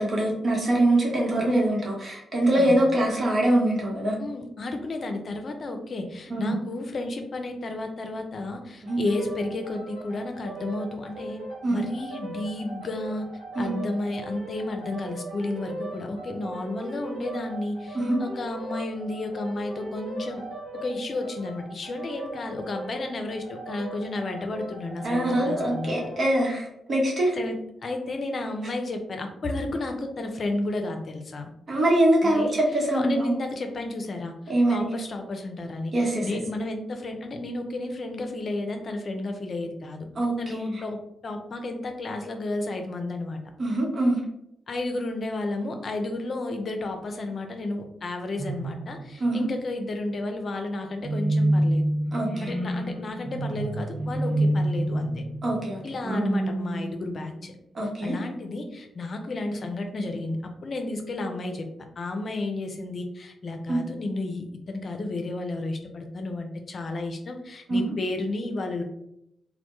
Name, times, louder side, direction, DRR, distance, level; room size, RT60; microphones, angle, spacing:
voice 1, 0.0-4.2 6.3-6.6 8.8-9.0 11.6-11.8 13.5-13.8 17.9-18.2 25.0-27.4 31.7-33.3 34.5-34.9 35.9-36.3 40.2-40.7 43.6-44.2 49.2-49.5 52.1-52.5 55.4-55.8 56.1-56.3 57.7-58.2 63.7-63.8 67.7-67.9, right 1 dB, 55° right, -1 dB, 0.9 m, -23 dB
voice 2, 4.2-11.4 11.7-13.3 13.6-20.4 20.7-25.9 27.3-31.5 32.2-32.6 32.9-34.3 34.7-40.1 40.4-43.4 44.7-51.8 52.4-55.2 55.8-57.5 58.0-61.7 62.0-68.8, left 2 dB, 55° left, 5 dB, 0.4 m, -32 dB
sound 1, 8.9-26.3, right 2 dB, 80° right, 1.0 m, -39 dB
scary sound, 48.4-49.5 51.0-57.5, right 1 dB, 5° right, 0.6 m, -27 dB
2.1 x 2.1 x 2.9 m, 0.80 s
supercardioid pair, 45°, 0 cm